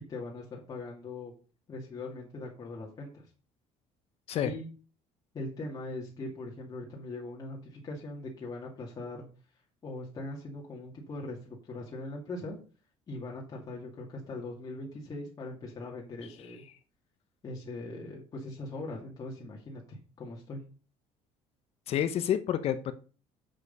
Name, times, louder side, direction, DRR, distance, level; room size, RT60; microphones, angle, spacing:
voice 1, 0.1-1.3 1.7-3.3 4.4-4.7 5.3-9.3 9.8-12.6 13.1-16.6 17.4-20.6, left 2 dB, 30° left, -2 dB, 2.4 m, -41 dB
voice 2, 21.9-22.9, left 10 dB, 55° left, 11 dB, 0.9 m, -29 dB
7.6 x 6.5 x 5.5 m, 0.37 s
cardioid pair, 130°, 13 cm